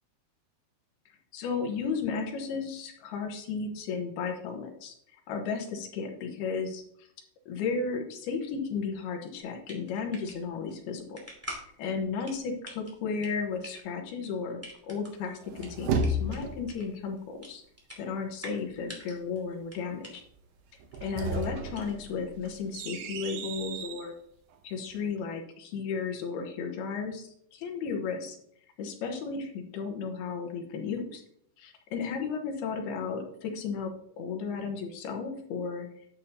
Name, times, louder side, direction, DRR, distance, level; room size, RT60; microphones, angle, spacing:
voice 1, 1.3-7.1 7.5-11.2 11.5-17.6 18.0-20.2 21.0-24.1 24.6-28.2 28.8-31.2 31.6-33.9 34.2-35.9, left 5 dB, 75° left, 3 dB, 2.9 m, -34 dB
sound 1, 9.3-22.3, equal, 5° right, 1.5 m, -48 dB
sound 2, 15.2-16.7 20.8-24.1, right 2 dB, 85° right, 1.8 m, -33 dB
10.5 x 8.1 x 2.8 m, 0.68 s
omnidirectional pair, 4.7 m